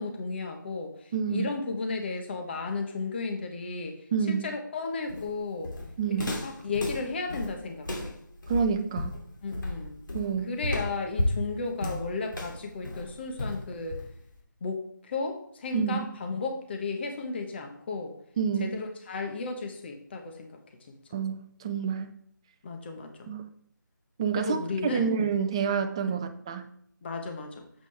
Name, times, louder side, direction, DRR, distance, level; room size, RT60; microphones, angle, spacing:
voice 1, 0.0-5.8 6.2-8.2 9.4-10.0 10.5-14.0 14.6-18.2 18.6-20.6 20.9-21.0 22.6-23.3 24.3-25.1 27.0-27.7, left 4 dB, 30° left, 4 dB, 1.2 m, -34 dB
voice 2, 1.1-1.5 4.1-4.5 6.0-6.3 8.5-9.1 10.1-10.5 15.7-16.1 18.4-18.8 21.1-22.1 23.3-23.4 24.2-24.6 24.9-26.6, right 6 dB, 15° right, 8 dB, 0.5 m, -28 dB
Walk footsteps, 5.1-14.3, left 1 dB, 70° left, 2.5 m, -33 dB
9.1 x 7.6 x 3.4 m, 0.64 s
figure-of-eight pair, 155°, 11 cm